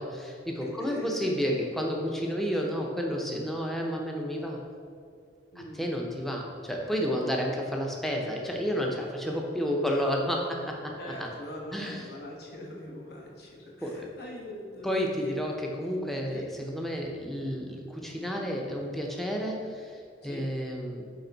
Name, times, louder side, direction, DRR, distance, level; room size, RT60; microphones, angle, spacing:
voice 1, 0.0-4.6 5.8-10.9 11.2-11.3 11.7-12.0 13.8-14.1 14.8-15.5 15.8-21.0, equal, ahead, -1 dB, 0.7 m, -31 dB
voice 2, 0.6-1.3 5.5-5.9 11.0-15.3 16.3-16.5 17.4-17.7 20.2-20.5, left 1 dB, 55° left, -2 dB, 1.1 m, -42 dB
8.9 x 3.5 x 4.0 m, 2.3 s
head